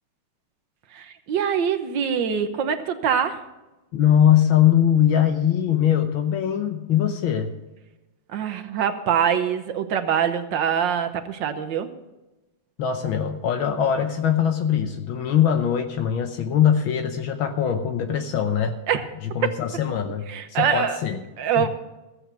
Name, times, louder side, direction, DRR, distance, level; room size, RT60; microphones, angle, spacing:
voice 1, 0.9-3.5 8.3-11.9 18.9-19.1 19.4-19.6 20.3-21.0 21.4-21.7, right 8 dB, 65° right, 8 dB, 1.5 m, -24 dB
voice 2, 3.9-7.5 12.8-18.7 19.3-21.2 21.6-21.7, left 9 dB, 70° left, 6 dB, 1.6 m, -21 dB
15.0 x 8.1 x 6.0 m, 1.0 s
omnidirectional pair, 2.3 m